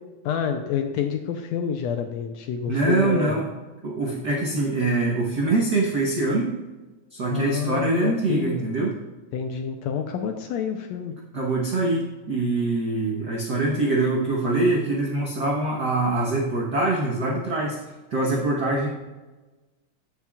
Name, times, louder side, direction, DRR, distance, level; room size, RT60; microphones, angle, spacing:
voice 1, 0.2-3.4 7.3-8.6 9.3-11.1, left 7 dB, 80° left, 5 dB, 1.6 m, -28 dB
voice 2, 2.7-3.5 3.8-6.5 7.1-8.9 11.3-17.8 18.1-18.9, right 2 dB, 70° right, -2 dB, 0.9 m, -24 dB
14.5 x 5.8 x 2.4 m, 1.2 s
omnidirectional pair, 3.5 m